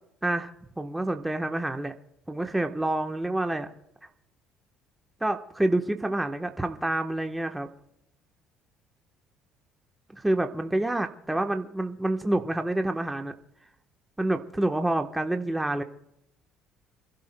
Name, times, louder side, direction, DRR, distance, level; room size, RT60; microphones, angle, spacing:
voice 1, 0.8-1.9 2.3-3.7 5.2-7.7 10.1-13.3 14.2-15.8, right 1 dB, 10° right, 5 dB, 1.1 m, -27 dB
29.5 x 12.0 x 2.2 m, 0.81 s
supercardioid pair, 80°, 0 cm